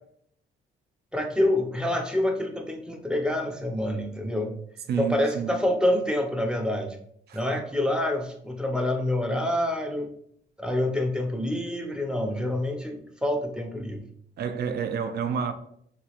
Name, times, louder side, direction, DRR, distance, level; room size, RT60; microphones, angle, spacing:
voice 1, 1.1-4.5 5.0-7.0 7.3-10.1 10.6-14.0, left 1 dB, 5° right, 0.5 m, -27 dB
voice 2, 4.9-5.6 7.3-7.4 14.4-15.5, right 7 dB, 55° right, 0.4 m, -29 dB
2.9 x 2.4 x 2.9 m
cardioid pair, 90°, 20 cm